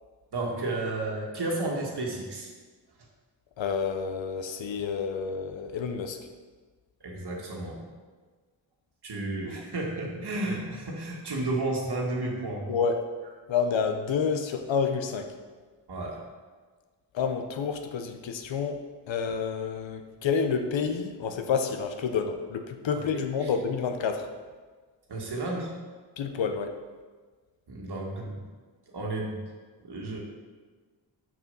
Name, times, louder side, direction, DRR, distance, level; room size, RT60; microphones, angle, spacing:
voice 1, 0.3-2.5 7.0-7.8 9.0-12.7 15.9-16.2 23.1-23.5 25.1-25.7 27.7-28.4 28.9-29.4 29.8-30.2, right 2 dB, 60° right, -1 dB, 1.9 m, -32 dB
voice 2, 3.6-6.2 12.7-13.1 13.5-15.3 17.1-18.8 19.1-24.3 26.2-26.7, left 6 dB, 80° left, 6 dB, 0.9 m, -29 dB
6.7 x 6.0 x 5.5 m, 1.4 s
wide cardioid pair, 95°, 45 cm